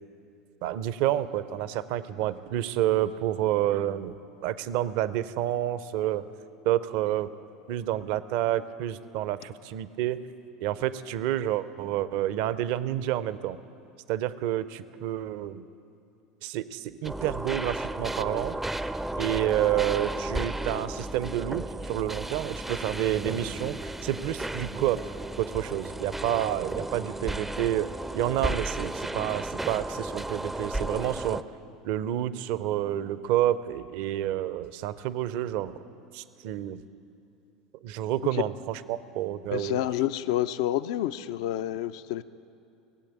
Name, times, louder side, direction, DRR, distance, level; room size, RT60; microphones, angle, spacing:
voice 1, 0.6-4.1 4.4-6.3 6.6-7.3 7.7-10.2 10.6-13.6 14.1-15.7 16.4-18.6 19.2-27.9 28.1-31.4 31.8-35.7 36.1-36.8 37.8-39.8, right 12 dB, 55° right, 15 dB, 0.5 m, -29 dB
sound 1, 17.0-31.4, right 1 dB, 5° right, 0.4 m, -34 dB
voice 2, 39.5-42.2, left 13 dB, 65° left, 13 dB, 0.4 m, -29 dB
18.0 x 7.8 x 8.7 m, 2.6 s
figure-of-eight pair, 75°, 3 cm